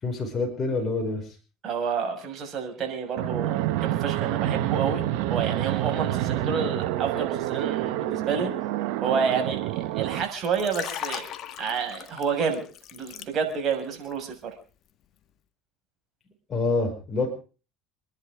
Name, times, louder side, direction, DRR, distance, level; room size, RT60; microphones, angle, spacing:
voice 1, 0.0-1.3 16.5-17.3, left 3 dB, 30° left, 1 dB, 5.5 m, -27 dB
voice 2, 1.6-8.5 9.0-11.3 11.6-12.6 12.9-14.5, right 6 dB, 45° right, 3 dB, 6.3 m, -29 dB
Fixed-wing aircraft airplane, 3.2-10.2, right 14 dB, 70° right, 1.3 m, -28 dB
Liquid, 10.4-13.7 14.0-14.3, left 10 dB, 50° left, 1.7 m, -38 dB
27.0 x 11.0 x 5.0 m, 0.38 s
supercardioid pair, 90°, 0 cm